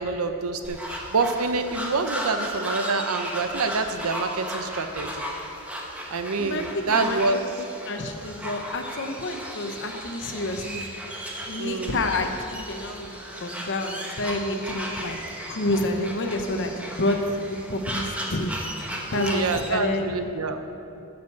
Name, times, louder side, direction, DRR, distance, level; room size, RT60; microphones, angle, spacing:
voice 1, 0.0-5.2 6.1-7.4 11.6-12.1 19.1-20.6, right 4 dB, 75° right, 7 dB, 0.7 m, -27 dB
sound 1, 0.6-19.7, equal, 5° right, 1.0 m, -35 dB
voice 2, 6.4-10.9 11.5-15.2 15.5-18.5 19.1-20.3, left 1 dB, 55° left, 4 dB, 0.9 m, -29 dB
12.5 x 5.2 x 7.0 m, 2.7 s
head